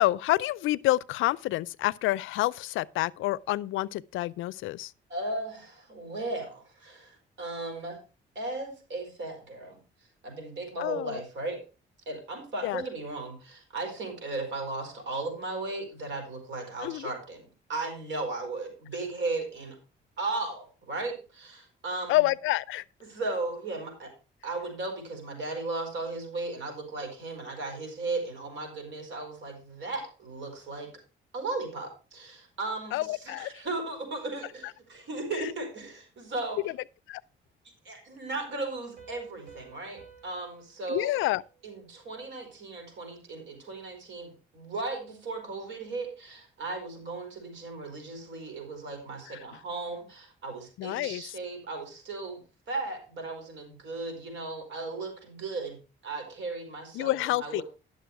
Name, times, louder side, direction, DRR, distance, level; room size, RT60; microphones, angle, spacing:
voice 1, 0.0-4.9 10.8-11.2 12.6-12.8 16.8-17.1 22.1-22.8 32.9-33.5 37.1-37.2 40.9-41.4 50.8-51.2 56.9-57.6, left 17 dB, 85° left, 0.4 m, -28 dB
voice 2, 5.1-8.0 8.3-9.8 10.2-11.6 12.1-19.8 20.2-22.2 23.0-24.1 24.4-30.9 31.3-36.6 37.8-41.1 41.6-52.4 52.7-57.6, right 3 dB, 70° right, 4.6 m, -36 dB
Piano, 39.0-42.4, right 6 dB, 45° right, 3.4 m, -55 dB
11.5 x 6.7 x 4.7 m
cardioid pair, 90°, 20 cm